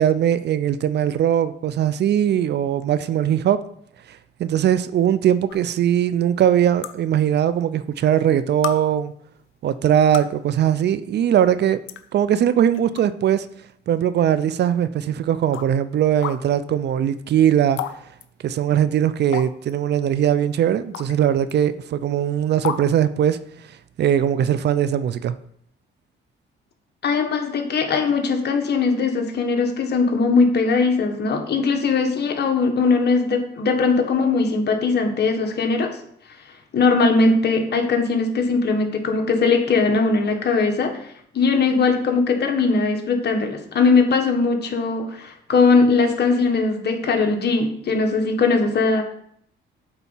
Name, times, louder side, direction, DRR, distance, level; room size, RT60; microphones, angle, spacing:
voice 1, 0.0-3.6 4.1-9.1 9.6-11.8 12.1-13.5 13.9-17.8 18.4-23.4 24.0-25.3, right 10 dB, 60° right, 14 dB, 0.5 m, -20 dB
sound 1, 5.5-5.6 6.8-6.9 7.9-8.0 8.6-8.8 9.9-10.4 11.3-11.4 11.9-12.0 12.7-13.0 13.5-13.6 14.6-14.7 15.5-15.7 16.2-16.4 17.8-18.0 18.2-18.3 19.3-19.7 20.9-21.1 21.5-21.6 22.6-22.8, left 11 dB, 80° left, 0.6 m, -30 dB
voice 2, 27.0-36.0 36.7-41.1 41.3-49.0, left 4 dB, 55° left, 4 dB, 1.5 m, -20 dB
8.8 x 4.0 x 5.6 m, 0.68 s
cardioid pair, 90°, 20 cm